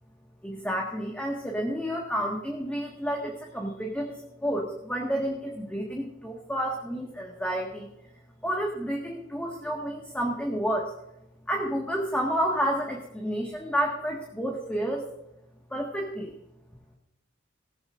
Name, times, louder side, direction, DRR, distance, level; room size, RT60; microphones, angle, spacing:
voice 1, 0.4-7.9 8.4-10.9 11.5-15.0 15.7-16.3, equal, 5° left, -1 dB, 1.7 m, -30 dB
18.5 x 14.5 x 2.6 m, 0.85 s
head